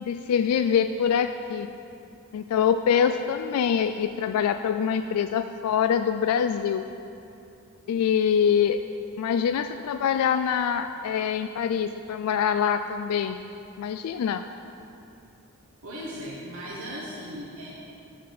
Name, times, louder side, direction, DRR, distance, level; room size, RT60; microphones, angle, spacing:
voice 1, 0.0-1.7 2.3-6.8 7.9-8.8 9.2-13.5 13.8-14.4, left 7 dB, 90° left, 11 dB, 0.3 m, -24 dB
voice 2, 15.8-17.7, equal, 80° right, -6 dB, 1.3 m, -37 dB
12.0 x 4.2 x 6.5 m, 2.8 s
head